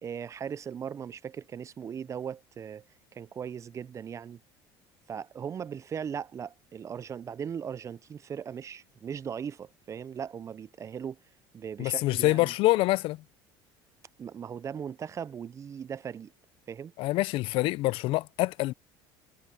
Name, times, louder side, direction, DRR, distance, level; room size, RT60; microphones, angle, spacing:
voice 1, 0.0-2.8 3.1-4.4 5.1-11.2 11.5-12.5 14.2-16.3 16.7-16.9, right 7 dB, 30° right, 0.5 m, -38 dB
voice 2, 11.8-13.2 17.0-18.7, left 19 dB, 65° left, 0.5 m, -26 dB
supercardioid pair, 100°, 10 cm